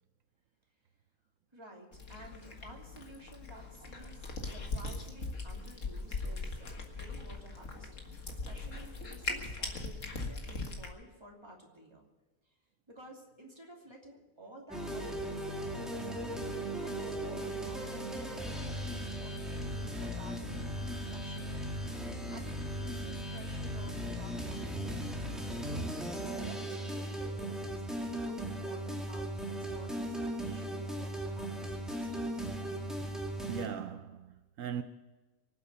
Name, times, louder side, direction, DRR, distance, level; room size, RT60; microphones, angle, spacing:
voice 1, 1.5-12.1 12.9-21.6 22.0-25.7 26.4-32.5, right 1 dB, 20° right, 2.8 m, -53 dB
Cat, 1.9-10.9, left 3 dB, 65° left, 2.1 m, -40 dB
sound 1, 14.7-33.7, right 1 dB, ahead, 2.1 m, -37 dB
voice 2, 33.5-34.8, right 8 dB, 75° right, 1.1 m, -39 dB
24.0 x 8.2 x 6.8 m
omnidirectional pair, 1.4 m